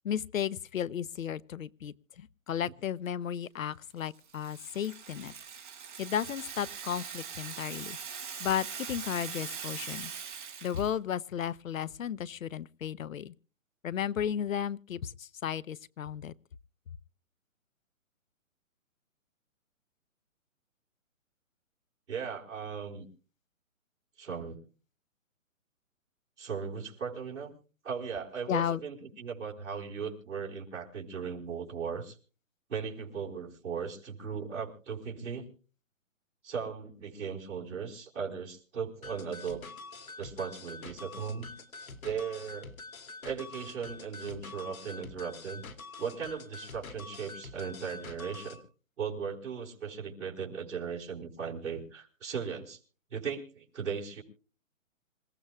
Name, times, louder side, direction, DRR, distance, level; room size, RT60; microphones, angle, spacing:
voice 1, 0.0-5.3 6.0-8.0 8.4-10.1 10.6-13.3 13.8-16.3 28.5-28.8, left 9 dB, 70° left, 0.9 m, -34 dB
Rattle (instrument), 4.0-10.9, right 7 dB, 35° right, 4.0 m, -42 dB
voice 2, 22.1-23.1 24.2-24.6 26.4-27.5 27.8-32.2 32.7-35.5 36.4-39.6 40.2-41.5 42.0-42.7 43.2-45.6 46.0-48.6 49.0-52.8 53.1-54.2, right 6 dB, 60° right, 4.7 m, -37 dB
sound 1, 39.0-48.6, left 3 dB, 85° left, 2.7 m, -46 dB
27.0 x 15.0 x 2.3 m
hypercardioid pair, 175°, 41 cm